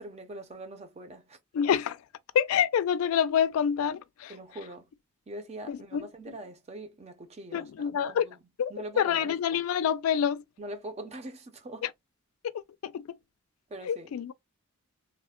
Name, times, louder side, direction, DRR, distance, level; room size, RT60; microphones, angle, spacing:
voice 1, 0.0-1.4 4.3-4.9 5.3-8.4 8.7-9.6 10.6-11.9 13.7-14.1, right 1 dB, 30° right, 0.5 m, -42 dB
voice 2, 1.5-2.0 2.3-4.3 5.7-6.0 7.5-8.2 8.6-10.4 12.5-13.2 13.9-14.3, left 8 dB, 80° left, 0.3 m, -27 dB
3.1 x 2.1 x 2.2 m
head